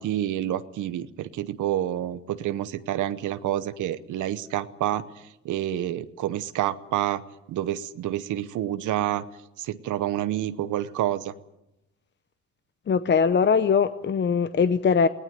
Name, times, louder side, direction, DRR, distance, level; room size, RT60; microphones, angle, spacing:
voice 1, 0.0-5.1 5.4-7.2 7.5-9.2 9.6-11.3, right 12 dB, 80° right, 1.0 m, -28 dB
voice 2, 12.9-15.1, left 6 dB, 35° left, 0.8 m, -21 dB
20.0 x 18.5 x 9.3 m
cardioid pair, 90°, 30 cm